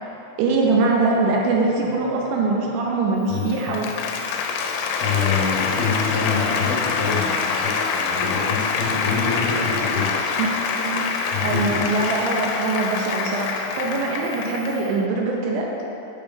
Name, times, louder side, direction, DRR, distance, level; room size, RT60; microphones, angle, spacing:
voice 1, 0.4-3.9 10.7-11.1 11.4-15.9, right 3 dB, 80° right, -1 dB, 2.9 m, -23 dB
Applause, 3.3-14.9, left 5 dB, 85° left, 2.9 m, -25 dB
voice 2, 3.3-4.0 5.0-10.3 11.3-11.9, left 5 dB, 70° left, -8 dB, 2.5 m, -26 dB
7.8 x 3.2 x 5.5 m, 2.9 s
omnidirectional pair, 5.5 m